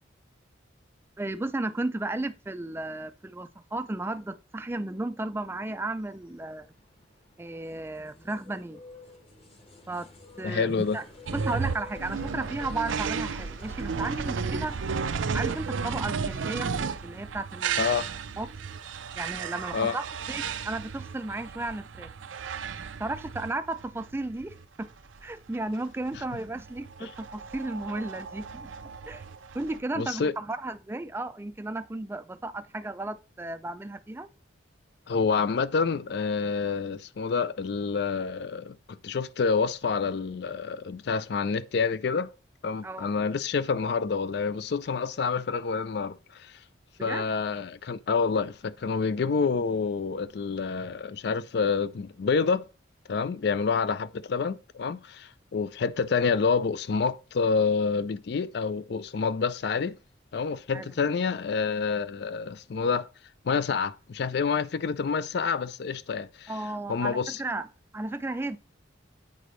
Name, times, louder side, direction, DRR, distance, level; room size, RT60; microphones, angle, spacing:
voice 1, 1.2-6.7 7.4-8.8 9.9-10.1 10.4-11.1 11.3-14.8 15.3-16.7 17.0-18.0 18.4-18.5 19.2-22.1 23.0-24.9 25.2-28.7 29.1-29.2 29.5-34.3 42.8-43.1 47.0-47.3 60.7-60.9 66.5-67.7 67.9-68.6, right 2 dB, 10° right, 0.3 m, -34 dB
sound 1, 5.9-17.1, left 2 dB, 30° left, 1.0 m, -51 dB
voice 2, 10.4-11.0 17.8-18.1 19.7-20.0 27.0-27.1 30.0-30.3 35.1-42.3 42.6-46.5 47.0-52.6 53.1-60.0 60.3-63.1 63.4-66.5 66.9-67.4, left 5 dB, 60° left, 0.4 m, -28 dB
sound 2, 11.3-29.8, right 5 dB, 85° right, 0.5 m, -34 dB
8.4 x 5.0 x 3.1 m
head